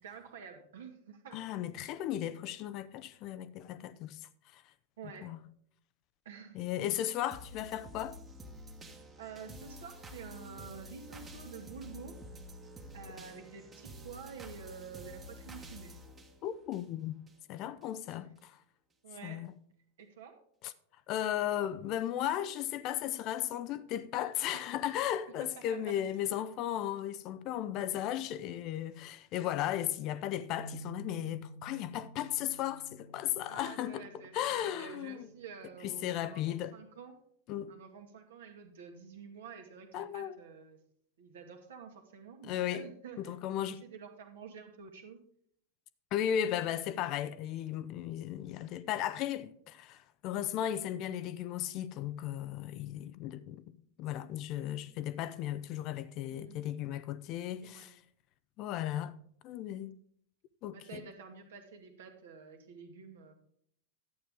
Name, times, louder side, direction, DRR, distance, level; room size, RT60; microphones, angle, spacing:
voice 1, 0.0-1.4 5.0-5.3 6.3-6.6 9.2-12.2 12.9-16.0 18.2-18.3 19.0-19.5 20.0-20.4 24.5-24.7 25.4-25.9 33.5-37.2 37.7-40.8 41.2-45.2 56.3-56.6 57.3-58.0 60.7-63.3, right 6 dB, 60° right, 1.8 m, -49 dB
voice 2, 1.3-4.2 4.5-4.6 5.2-5.4 6.5-8.2 16.4-17.2 17.5-18.6 19.2-19.5 20.6-20.7 21.1-34.1 34.3-35.3 35.8-36.7 37.5-37.7 39.9-40.4 42.4-42.8 43.2-43.8 46.1-53.6 54.0-58.0 58.6-59.1 59.4-59.9 60.6-61.0, left 11 dB, 40° left, 0.5 m, -35 dB
sound 1, 7.3-17.3 17.8-17.9, equal, 20° right, 1.4 m, -49 dB
sound 2, 30.6-36.8, right 2 dB, 80° right, 0.5 m, -52 dB
11.5 x 8.6 x 3.7 m
figure-of-eight pair, 90°, 0 cm